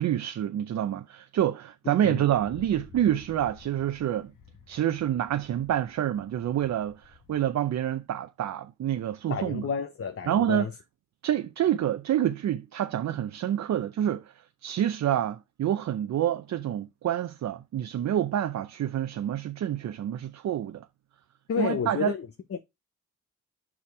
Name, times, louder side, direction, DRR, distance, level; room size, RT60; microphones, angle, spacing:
voice 1, 0.0-4.3 4.7-9.6 10.3-10.7 11.2-14.3 14.6-20.9 21.6-22.1, right 11 dB, 70° right, 0.6 m, -27 dB
voice 2, 1.8-2.2 9.3-10.7 21.5-22.6, left 6 dB, 50° left, 0.9 m, -31 dB
Wind, 2.3-7.8, left 6 dB, 80° left, 1.4 m, -53 dB
5.9 x 5.2 x 4.5 m
cardioid pair, 60°, 29 cm